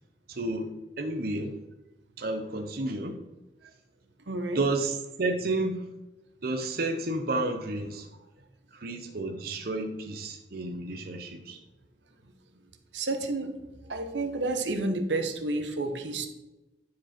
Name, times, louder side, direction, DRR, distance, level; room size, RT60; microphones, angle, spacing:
voice 1, 0.3-0.7 1.0-1.6 2.2-3.2 4.5-5.9 6.4-8.1 8.7-11.6, right 2 dB, 60° right, 4 dB, 0.8 m, -31 dB
voice 2, 4.3-4.6 12.9-13.5 13.9-16.3, right 2 dB, 85° right, 6 dB, 1.0 m, -30 dB
10.5 x 4.8 x 4.4 m, 1.0 s
head